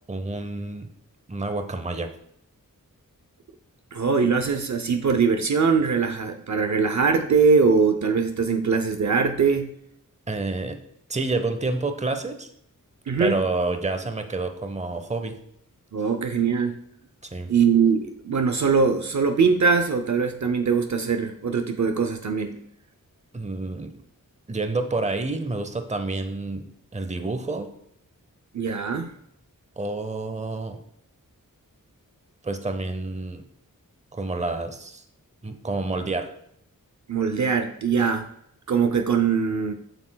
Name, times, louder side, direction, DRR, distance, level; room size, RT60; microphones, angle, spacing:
voice 1, 0.1-0.9 1.3-2.1 10.3-10.8 11.1-12.5 13.2-15.4 17.3-17.5 23.3-23.9 24.5-27.7 29.8-30.8 32.4-33.4 34.1-35.0 35.4-36.3, right 3 dB, 20° right, 7 dB, 0.7 m, -28 dB
voice 2, 3.9-9.7 13.1-13.4 15.9-16.8 17.5-22.7 28.5-29.1 37.1-38.3 38.7-39.7, right 5 dB, 55° right, 7 dB, 0.6 m, -22 dB
7.7 x 6.1 x 2.3 m, 0.73 s
wide cardioid pair, 65°, 34 cm